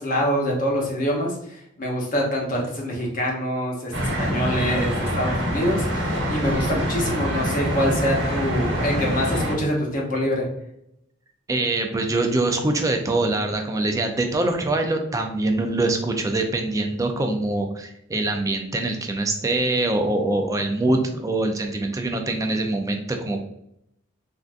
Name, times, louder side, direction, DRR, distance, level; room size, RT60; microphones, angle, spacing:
voice 1, 0.0-10.5, equal, 45° left, -2 dB, 0.8 m, -25 dB
sound 1, 3.9-9.5, equal, 65° right, 0.9 m, -25 dB
voice 2, 11.5-23.4, right 2 dB, 15° right, 4 dB, 0.3 m, -24 dB
3.4 x 2.5 x 2.4 m, 0.75 s
head